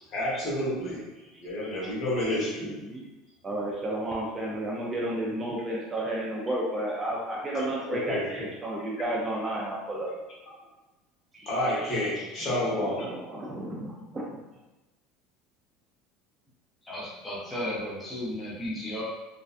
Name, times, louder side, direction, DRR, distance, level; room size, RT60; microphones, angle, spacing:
voice 1, 0.1-1.0 1.4-2.8 7.5-8.5 11.5-13.1, left 1 dB, 35° left, -7 dB, 0.9 m, -30 dB
voice 2, 1.4-1.9 2.6-3.0 3.4-10.1 11.3-14.4, right 1 dB, 15° right, -4 dB, 0.3 m, -33 dB
voice 3, 16.8-19.0, left 1 dB, 10° left, -7 dB, 0.7 m, -34 dB
2.6 x 2.1 x 2.4 m, 1.1 s
cardioid pair, 160°, 0 cm